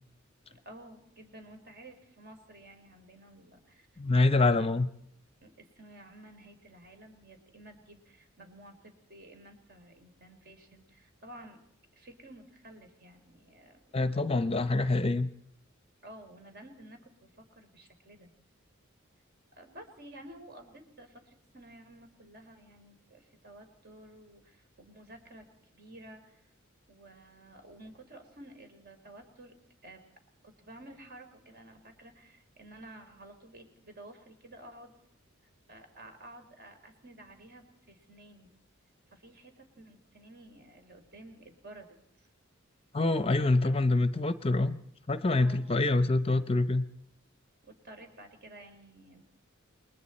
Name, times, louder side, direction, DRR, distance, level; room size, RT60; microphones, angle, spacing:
voice 1, 0.5-3.9 4.1-4.6 5.4-11.6 11.9-14.0 14.5-14.6 16.0-18.3 19.5-25.5 25.7-26.5 26.9-29.6 29.8-30.0 30.4-34.9 35.7-38.5 39.1-42.3 43.3-43.7 45.3-45.7 47.6-49.2, right 1 dB, 50° right, 5 dB, 3.3 m, -52 dB
voice 2, 4.0-4.9 13.9-15.3 42.9-44.8 45.1-46.8, left 2 dB, 30° left, 12 dB, 0.7 m, -26 dB
29.0 x 21.5 x 4.3 m, 0.72 s
head